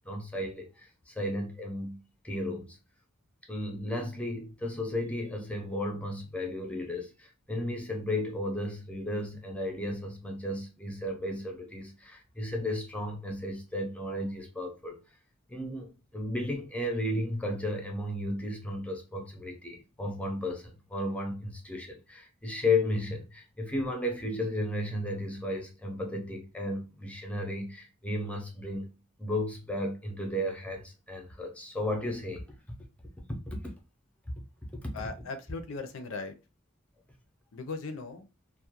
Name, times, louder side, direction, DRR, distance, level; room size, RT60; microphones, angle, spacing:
voice 1, 0.0-2.8 3.5-15.0 15.5-28.9 29.2-32.4 33.3-33.7 34.8-34.9, left 1 dB, 5° left, 0.4 m, -34 dB
voice 2, 34.9-36.4 37.5-38.3, left 3 dB, 75° left, 0.5 m, -38 dB
2.3 x 2.1 x 2.8 m
head